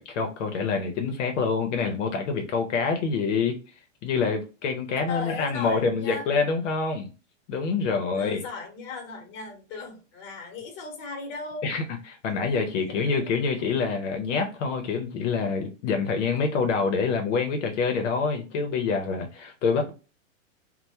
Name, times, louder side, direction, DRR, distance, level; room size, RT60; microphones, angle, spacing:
voice 1, 0.0-3.5 4.0-7.1 7.5-8.4 11.6-19.9, left 5 dB, 70° left, 5 dB, 0.6 m, -26 dB
voice 2, 5.0-6.3 8.1-11.7 12.8-13.3, left 4 dB, 30° left, 2 dB, 0.9 m, -37 dB
2.1 x 2.1 x 2.8 m, 0.32 s
hypercardioid pair, 135°, 39 cm